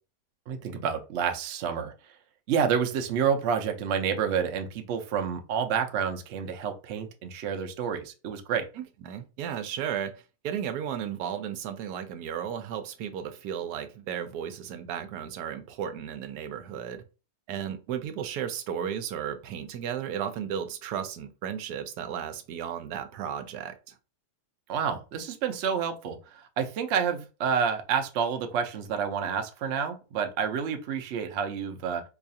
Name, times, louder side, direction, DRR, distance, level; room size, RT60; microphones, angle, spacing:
voice 1, 0.5-1.9 2.5-8.7 24.7-26.2 26.6-32.0, right 7 dB, 60° right, 0.8 m, -29 dB
voice 2, 8.8-10.1 10.4-17.0 17.5-23.9, right 9 dB, 85° right, 1.1 m, -34 dB
4.7 x 2.3 x 2.6 m
omnidirectional pair, 1.6 m